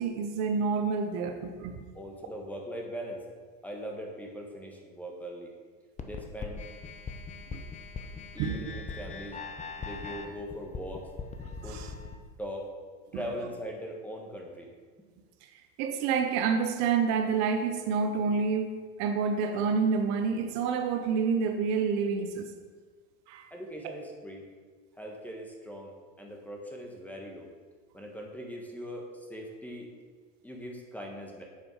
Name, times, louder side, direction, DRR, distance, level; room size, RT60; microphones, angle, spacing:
voice 1, 0.0-1.8 7.5-7.6 8.4-8.7 11.6-11.9 15.4-22.5 23.3-23.5 23.8-23.9, right 5 dB, 60° right, 6 dB, 0.8 m, -28 dB
voice 2, 1.9-3.2 3.6-5.5 6.0-6.6 8.3-9.4 9.8-11.1 11.6-11.8 12.4-12.7 13.1-14.7 15.0-15.1 23.5-24.4 24.9-27.5 27.9-29.9 30.4-31.4, equal, 5° left, 0 dB, 1.3 m, -40 dB
sound 1, 6.0-12.2, left 5 dB, 25° left, 0.7 m, -41 dB
7.6 x 5.1 x 4.8 m, 1.5 s
supercardioid pair, 110°, 31 cm